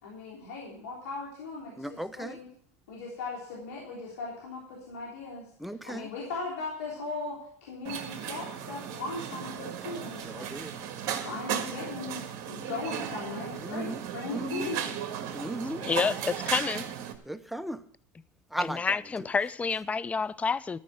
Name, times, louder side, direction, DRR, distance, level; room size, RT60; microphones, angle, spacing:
voice 1, 0.0-2.5 2.9-5.5 5.8-10.8 11.2-15.0, left 3 dB, 90° left, 3.4 m, -38 dB
voice 2, 1.8-2.4 5.6-6.1 10.2-10.7 13.6-14.0 14.3-14.7 15.3-15.8 17.3-17.8 18.5-19.0, right 1 dB, ahead, 0.8 m, -36 dB
sound 1, 7.8-17.1, right 9 dB, 60° right, 1.7 m, -36 dB
voice 3, 15.8-16.8 18.6-20.8, left 5 dB, 15° left, 0.4 m, -29 dB
13.0 x 5.3 x 8.5 m
supercardioid pair, 100°, 8 cm